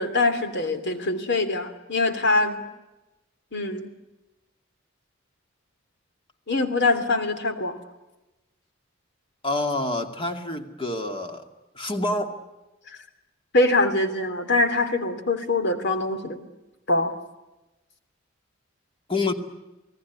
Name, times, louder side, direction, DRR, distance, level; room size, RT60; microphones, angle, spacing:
voice 1, 0.0-2.6 3.5-3.9 6.5-7.8 12.9-13.0 13.5-16.5 16.9-17.1, left 2 dB, 60° left, 8 dB, 3.1 m, -23 dB
voice 2, 9.4-11.4 11.7-12.4 19.1-19.3, left 2 dB, 25° left, 5 dB, 2.4 m, -27 dB
29.0 x 19.0 x 9.6 m, 1.0 s
head